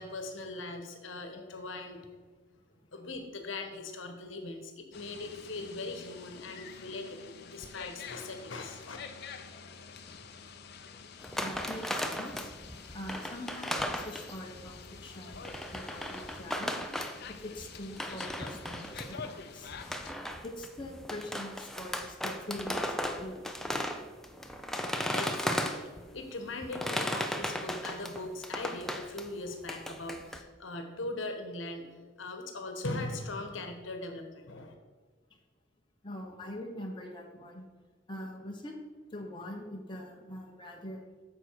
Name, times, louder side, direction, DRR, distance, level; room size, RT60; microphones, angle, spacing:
voice 1, 0.0-2.1 2.9-9.0 25.1-34.7, left 2 dB, 75° left, 5 dB, 1.2 m, -40 dB
sound 1, 4.9-20.1, left 5 dB, 55° left, 0.6 m, -48 dB
sound 2, 11.2-14.9 15.3-19.3 19.7-26.1 26.6-29.3 29.7-30.4, equal, ahead, 0.5 m, -36 dB
voice 2, 11.4-12.5 12.9-16.8 17.3-19.7 20.4-23.7 36.0-37.6 38.1-38.7 39.1-41.0, left 1 dB, 25° left, 0 dB, 1.1 m, -43 dB
8.9 x 6.6 x 4.6 m, 1.4 s
head